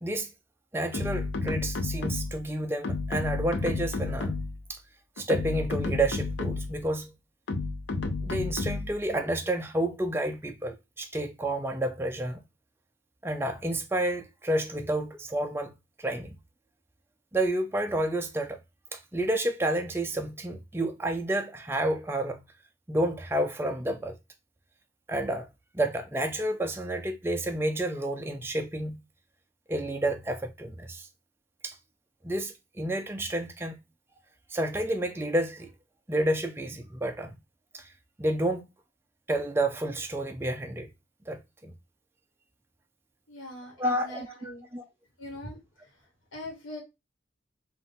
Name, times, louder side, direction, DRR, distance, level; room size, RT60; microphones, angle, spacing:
voice 1, 0.7-4.4 4.7-4.8 5.2-7.1 8.2-12.4 13.2-16.4 17.3-18.6 18.9-22.4 22.9-24.1 25.1-25.5 25.7-29.0 29.7-31.1 31.6-31.8 32.2-33.8 34.5-35.7 36.1-37.3 37.7-37.9 38.2-38.6 39.3-40.9 41.3-41.7 43.8-44.8, right 1 dB, 10° right, 0.4 m, -30 dB
sound 1, 0.9-2.5 2.8-4.6 5.2-6.8 7.5-9.0, left 3 dB, 65° left, 0.5 m, -31 dB
voice 2, 43.3-44.7 45.2-45.6 46.3-46.8, left 1 dB, 85° left, 1.4 m, -41 dB
3.6 x 2.5 x 3.9 m
head